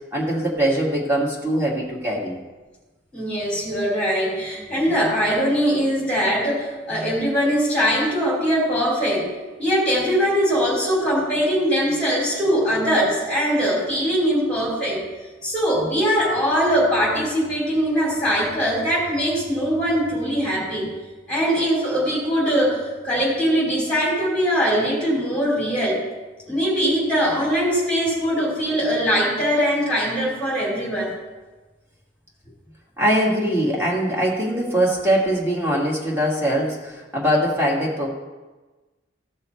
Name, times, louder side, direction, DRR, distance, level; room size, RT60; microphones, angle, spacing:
voice 1, 0.1-2.4 4.6-5.0 33.0-38.1, equal, 10° right, -4 dB, 2.0 m, -22 dB
voice 2, 3.1-9.3 9.6-15.0 15.4-20.9 21.3-26.0 26.4-31.1, equal, 5° left, -4 dB, 3.3 m, -21 dB
15.0 x 5.6 x 4.5 m, 1.2 s
head